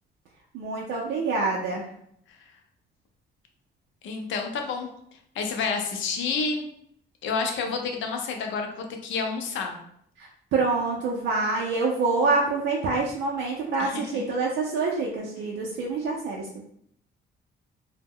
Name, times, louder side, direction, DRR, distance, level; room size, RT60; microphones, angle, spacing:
voice 1, 0.5-1.8 10.2-16.6, right 3 dB, 80° right, -2 dB, 0.4 m, -26 dB
voice 2, 4.0-4.9 5.3-6.7 7.2-9.8 13.8-14.2, left 4 dB, 75° left, 4 dB, 0.5 m, -29 dB
2.1 x 2.0 x 3.5 m, 0.69 s
cardioid pair, 90°, 20 cm